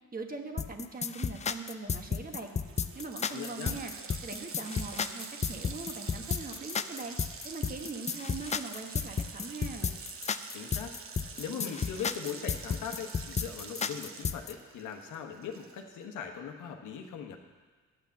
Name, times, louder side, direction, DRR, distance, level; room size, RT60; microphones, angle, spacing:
voice 1, 0.1-2.5 2.9-3.9 4.2-7.2 7.4-9.9, right 3 dB, 30° right, 4 dB, 1.3 m, -41 dB
sound 1, 0.6-14.5, left 6 dB, 25° left, 0.4 m, -33 dB
Water tap faucet, 1.9-2.0 2.2-16.0, right 5 dB, 45° right, 0.9 m, -46 dB
voice 2, 3.3-3.8 10.5-17.4, left 7 dB, 80° left, 3 dB, 1.2 m, -40 dB
10.0 x 5.9 x 7.5 m, 1.4 s
cardioid pair, 90°, 30 cm